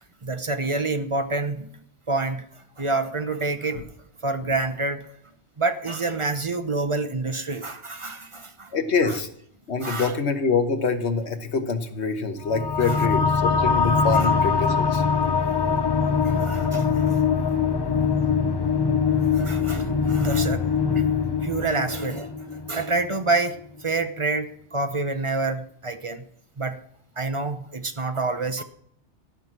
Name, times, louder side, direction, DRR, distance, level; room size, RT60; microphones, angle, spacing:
voice 1, 0.2-3.9 4.2-5.1 5.6-8.7 9.1-9.2 9.8-10.2 12.8-13.1 14.1-14.3 16.2-17.3 19.2-20.6 20.9-21.0 21.4-26.3 26.6-26.8 27.2-28.6, right 3 dB, 30° right, 8 dB, 0.8 m, -28 dB
voice 2, 8.7-9.3 9.7-15.0, left 4 dB, 70° left, 7 dB, 1.4 m, -25 dB
sound 1, 12.4-23.4, left 5 dB, 30° left, 0.5 m, -23 dB
14.0 x 6.1 x 7.3 m, 0.69 s
omnidirectional pair, 1.2 m